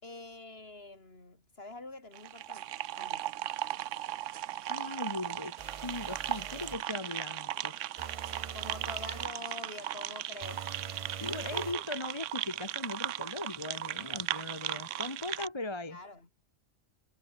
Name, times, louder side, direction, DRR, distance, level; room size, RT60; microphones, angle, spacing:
voice 1, 0.0-3.6 8.5-10.7 11.3-11.9 15.9-16.3, left 2 dB, 50° left, 3.7 m, -46 dB
sound 1, 2.1-15.5, right 13 dB, 75° right, 1.0 m, -37 dB
voice 2, 4.7-7.8 11.2-16.0, left 2 dB, 20° left, 1.3 m, -39 dB
sound 2, 5.6-6.9 8.0-9.4 10.4-11.8, right 6 dB, 40° right, 0.5 m, -44 dB
omnidirectional pair, 1.3 m